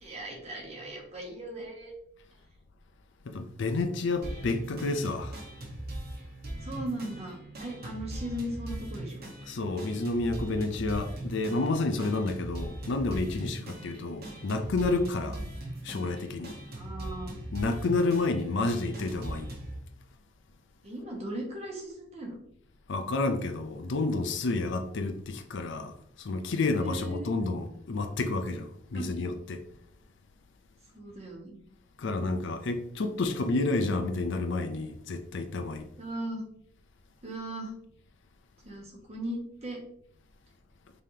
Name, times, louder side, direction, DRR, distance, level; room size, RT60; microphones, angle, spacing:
voice 1, 0.0-1.9 6.6-9.2 13.8-13.9 15.2-15.4 16.7-17.4 20.8-22.4 26.8-27.4 28.9-29.1 30.9-31.6 36.0-36.4 37.2-37.7 38.6-39.8, right 1 dB, 35° right, 1.3 m, -38 dB
voice 2, 3.3-5.4 9.5-15.4 15.8-16.5 17.5-19.5 22.9-25.9 26.2-29.6 32.0-35.9, left 3 dB, 65° left, 0.5 m, -30 dB
sound 1, 4.2-19.8, right 1 dB, 55° right, 1.1 m, -40 dB
5.3 x 3.3 x 2.8 m
head